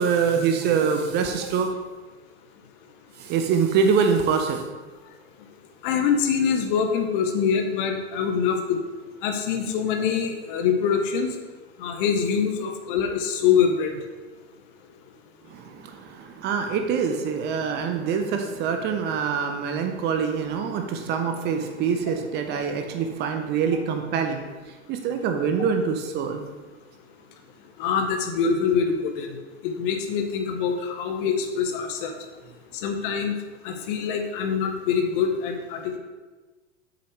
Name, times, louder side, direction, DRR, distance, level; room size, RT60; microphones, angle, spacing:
voice 1, 0.0-1.7 3.2-4.6 15.5-24.4 24.9-26.4, right 6 dB, 30° right, 5 dB, 0.7 m, -25 dB
voice 2, 5.8-8.8 9.2-11.3 11.8-13.9 27.8-29.3 29.6-32.1 32.7-33.4 33.6-36.0, left 6 dB, 45° left, 4 dB, 1.1 m, -24 dB
7.7 x 6.5 x 3.2 m, 1.3 s
figure-of-eight pair, 95°, 35 cm